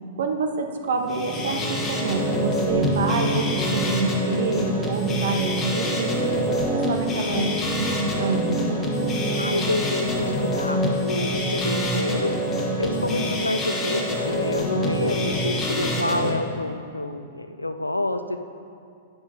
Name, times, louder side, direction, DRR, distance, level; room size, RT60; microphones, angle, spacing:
voice 1, 0.2-8.8 12.9-13.4, right 4 dB, 65° right, 4 dB, 0.6 m, -27 dB
sound 1, 0.9-16.3, equal, 20° left, 1.2 m, -25 dB
voice 2, 9.4-12.3 12.8-18.4, left 2 dB, 90° left, 9 dB, 0.4 m, -28 dB
10.5 x 6.9 x 2.7 m, 2.5 s
figure-of-eight pair, 100°, 0 cm